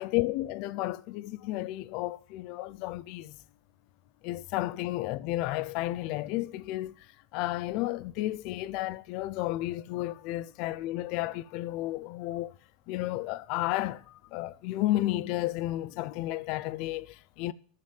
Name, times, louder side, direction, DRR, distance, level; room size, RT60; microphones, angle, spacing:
voice 1, 0.0-3.4 4.2-12.5 12.9-17.5, left 16 dB, 50° left, 0.6 m, -32 dB
13.5 x 7.6 x 7.4 m
supercardioid pair, 155°, 0 cm